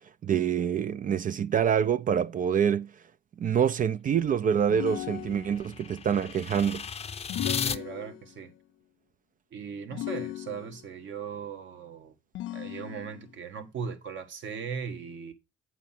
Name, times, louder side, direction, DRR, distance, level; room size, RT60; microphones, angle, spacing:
voice 1, 0.2-2.9 3.4-6.8, right 8 dB, 45° right, 0.4 m, -26 dB
sound 1, 4.2-7.8, left 6 dB, 30° left, 0.6 m, -36 dB
sound 2, 4.7-5.8 7.3-8.5 9.9-11.0 12.3-13.3, left 15 dB, 80° left, 0.5 m, -37 dB
voice 2, 7.6-8.5 9.5-12.1 12.5-15.3, right 6 dB, 70° right, 1.5 m, -38 dB
8.2 x 4.8 x 5.7 m
cardioid pair, 90°, 20 cm